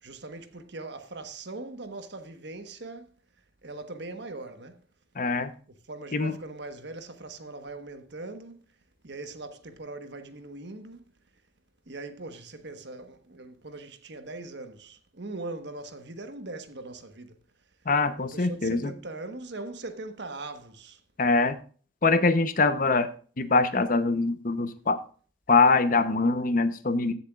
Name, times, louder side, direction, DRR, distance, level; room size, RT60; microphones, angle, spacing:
voice 1, 0.0-3.1 3.6-4.8 5.9-8.6 9.0-11.0 11.9-17.4 18.2-21.0, right 2 dB, 60° right, 1.3 m, -40 dB
voice 2, 5.1-5.5 6.1-6.4 17.9-18.9 21.2-21.6 22.0-23.1 23.4-25.0 25.5-27.1, left 3 dB, 45° left, 0.8 m, -23 dB
16.0 x 7.1 x 2.4 m
head